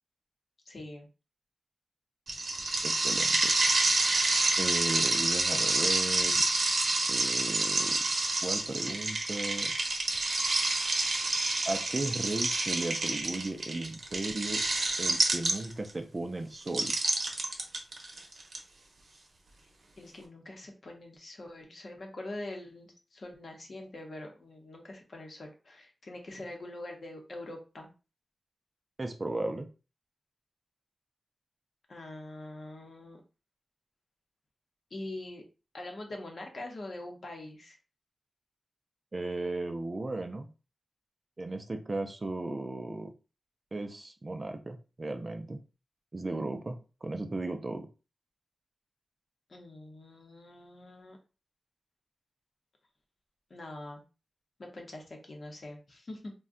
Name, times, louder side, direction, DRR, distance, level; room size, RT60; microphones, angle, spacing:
voice 1, 0.7-1.1 20.0-27.9 31.9-33.2 34.9-35.4 35.7-37.8 49.5-51.2 53.5-54.0 54.6-56.3, left 1 dB, 50° left, 2 dB, 0.7 m, -44 dB
sound 1, 2.3-15.9 16.7-18.6, right 2 dB, 50° right, 0.7 m, -28 dB
voice 2, 2.8-3.5 4.6-6.4 7.1-8.0 8.4-9.7 11.7-14.6 15.0-16.9 29.0-29.7 39.1-40.5 41.4-43.1 43.7-45.6 46.1-47.9, right 2 dB, 25° right, 6 dB, 0.3 m, -36 dB
2.5 x 2.2 x 3.6 m, 0.32 s
wide cardioid pair, 155°, 0 cm